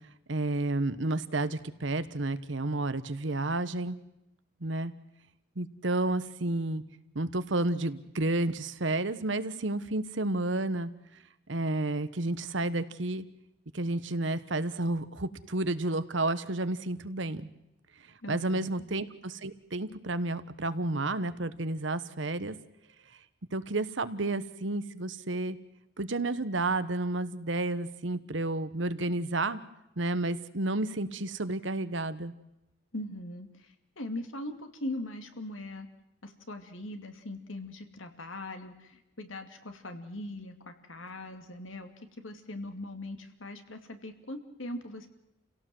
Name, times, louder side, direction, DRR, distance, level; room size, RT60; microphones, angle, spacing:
voice 1, 0.3-4.0 4.6-4.9 5.6-6.8 7.1-10.9 11.5-13.2 13.7-17.5 18.3-22.5 23.5-25.6 26.0-29.6 30.0-32.3, right 2 dB, 70° right, 13 dB, 1.2 m, -31 dB
voice 2, 18.2-18.8 32.9-33.5 34.0-35.9 36.2-41.9 42.2-45.1, left 1 dB, 90° left, 6 dB, 2.5 m, -40 dB
29.0 x 17.0 x 7.8 m, 0.88 s
head